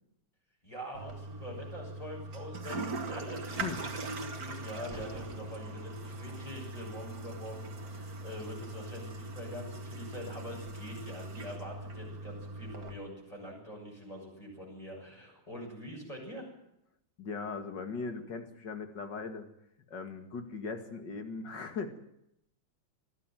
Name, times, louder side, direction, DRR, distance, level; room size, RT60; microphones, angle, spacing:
voice 1, 0.6-16.5, equal, 20° left, -2 dB, 7.6 m, -44 dB
Toilet flush, 0.9-12.9, right 2 dB, 55° right, 2.2 m, -41 dB
voice 2, 3.5-3.9 17.2-19.5 19.9-22.0, left 4 dB, 70° left, 7 dB, 2.8 m, -39 dB
Thunder, 4.8-9.8 10.4-10.7 11.3-14.1 14.4-14.5, right 1 dB, 10° right, 2.9 m, -55 dB
21.5 x 14.0 x 9.2 m, 0.80 s
omnidirectional pair, 2.0 m